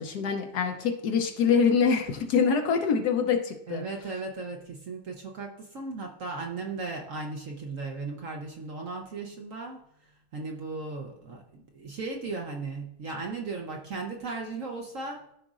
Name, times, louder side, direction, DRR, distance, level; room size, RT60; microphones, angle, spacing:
voice 1, 0.0-3.8, left 6 dB, 65° left, 5 dB, 1.2 m, -25 dB
voice 2, 3.7-9.8 10.3-15.2, right 3 dB, 55° right, 1 dB, 1.0 m, -36 dB
13.5 x 5.0 x 2.5 m, 0.77 s
omnidirectional pair, 2.0 m